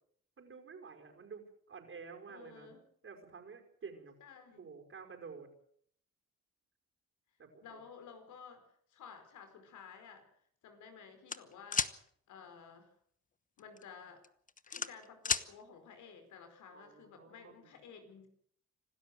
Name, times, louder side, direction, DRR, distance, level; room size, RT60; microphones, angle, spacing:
voice 1, 0.4-2.7 3.0-4.2 4.6-5.5 7.4-7.8 16.7-17.7, right 5 dB, 45° right, 4 dB, 5.3 m, -51 dB
voice 2, 2.3-2.8 4.2-4.6 7.6-10.3 10.6-12.0 12.3-12.9 13.6-14.3 14.7-18.3, left 6 dB, 75° left, 7 dB, 4.8 m, -53 dB
sound 1, 11.3-11.9 13.6-13.8 14.2-15.5, left 5 dB, 25° left, 1.1 m, -33 dB
26.0 x 12.5 x 7.9 m, 0.64 s
cardioid pair, 90°, 30 cm